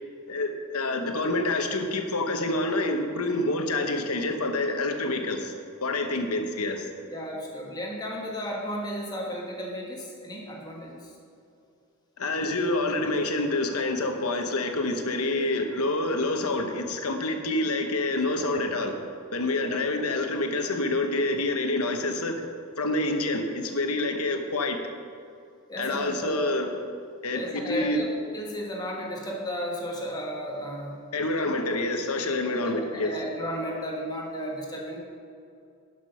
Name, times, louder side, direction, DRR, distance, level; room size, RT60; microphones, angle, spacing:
voice 1, 0.3-5.5 5.8-6.9 12.2-18.9 19.3-22.4 22.8-24.8 25.8-26.7 27.2-28.0 31.1-33.2, left 2 dB, 85° left, 5 dB, 1.0 m, -27 dB
voice 2, 7.1-11.1 19.6-19.7 25.7-26.4 27.3-31.0 32.6-35.0, equal, 20° left, -2 dB, 1.5 m, -34 dB
11.0 x 6.0 x 5.7 m, 2.5 s
head